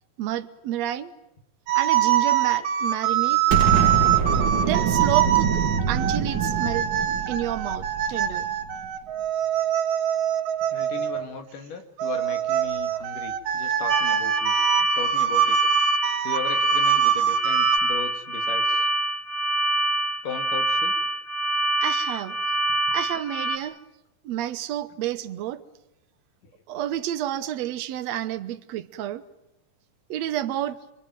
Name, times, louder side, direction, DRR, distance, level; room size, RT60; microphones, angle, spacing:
voice 1, 0.2-1.1 1.7-3.4 4.0-4.1 4.5-6.9 7.3-8.5 21.8-22.4 22.9-23.8 24.2-25.6 26.7-29.2 30.1-30.8, right 12 dB, 65° right, 2.1 m, -30 dB
sound 1, 1.7-11.2 12.0-17.8, right 11 dB, 85° right, 3.4 m, -24 dB
Explosion, 3.5-8.7, right 6 dB, 45° right, 1.7 m, -25 dB
voice 2, 10.7-15.6 16.2-18.9 20.2-20.9 26.4-26.5, left 6 dB, 75° left, 3.9 m, -37 dB
sound 2, 13.9-23.6, right 2 dB, 10° left, 0.6 m, -25 dB
25.5 x 24.5 x 9.3 m
omnidirectional pair, 3.8 m